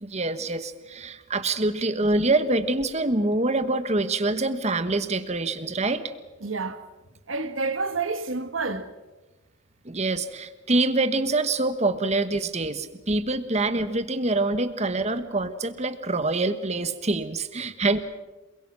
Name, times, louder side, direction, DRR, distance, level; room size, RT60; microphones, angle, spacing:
voice 1, 0.0-6.0 9.8-18.0, right 2 dB, 35° right, 1.3 m, -25 dB
voice 2, 6.4-6.8 7.3-8.9, right 3 dB, 75° right, 1.5 m, -29 dB
28.5 x 22.0 x 6.1 m
head